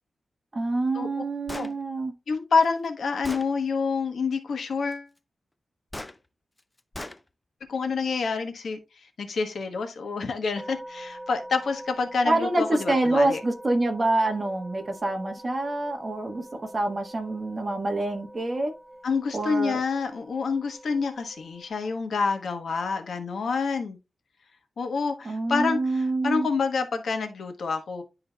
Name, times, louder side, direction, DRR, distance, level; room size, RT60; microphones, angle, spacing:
voice 1, 0.5-2.1 12.2-16.4 16.7-18.7 19.3-19.8 25.2-26.5, right 2 dB, 30° right, 1.2 m, -26 dB
Gunshot gunfire, 1.5-1.7 2.6-2.7 3.2-3.5 5.9-6.1 6.9-7.2, left 1 dB, 15° left, 0.4 m, -37 dB
voice 2, 2.3-5.1 7.7-8.8 9.2-13.4 19.0-24.0 24.8-28.0, left 4 dB, 75° left, 1.2 m, -27 dB
sound 1, 10.6-21.7, right 1 dB, 10° right, 0.9 m, -45 dB
11.0 x 3.9 x 2.2 m
wide cardioid pair, 125°, 0 cm